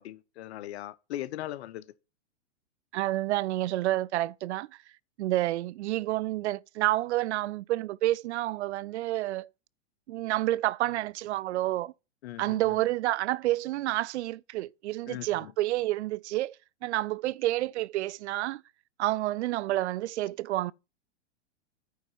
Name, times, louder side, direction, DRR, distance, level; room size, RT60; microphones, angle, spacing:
voice 1, 0.0-1.9 12.2-12.6 15.1-15.5, left 14 dB, 65° left, 0.8 m, -39 dB
voice 2, 2.9-4.7 5.2-9.5 10.1-11.9 12.4-16.6 16.8-18.6 19.0-20.7, right 16 dB, 70° right, 0.5 m, -29 dB
9.4 x 4.1 x 7.1 m
hypercardioid pair, 120°, 35 cm